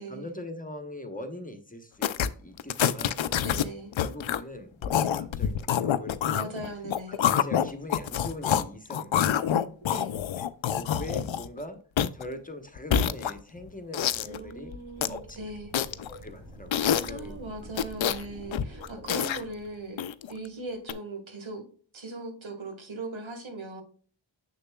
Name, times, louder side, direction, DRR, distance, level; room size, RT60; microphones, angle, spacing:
voice 1, 0.1-2.1 2.4-3.2 4.0-6.5 7.1-9.4 10.6-11.8 12.1-14.7 15.0-15.4 16.1-17.3 18.8-19.4, left 1 dB, 20° left, 7 dB, 1.0 m, -42 dB
sound 1, 2.0-2.3 2.6-3.6 3.9-4.4 4.8-8.6 8.9-11.6 12.0-12.2 12.8-13.6 13.9-14.4 14.7-15.2 15.7-16.2 16.7-17.2 17.7-18.2 18.5-19.4 20.0-20.3 20.9-21.0, left 9 dB, 80° left, 0.5 m, -26 dB
voice 2, 3.4-3.9 6.3-7.2 9.9-10.1 14.2-15.7 16.8-21.6 21.9-23.8, right 2 dB, 85° right, 5 dB, 1.7 m, -39 dB
sound 2, 13.7-20.0, equal, 40° right, 2.3 m, -48 dB
6.6 x 6.6 x 2.3 m, 0.43 s
wide cardioid pair, 85°, 46 cm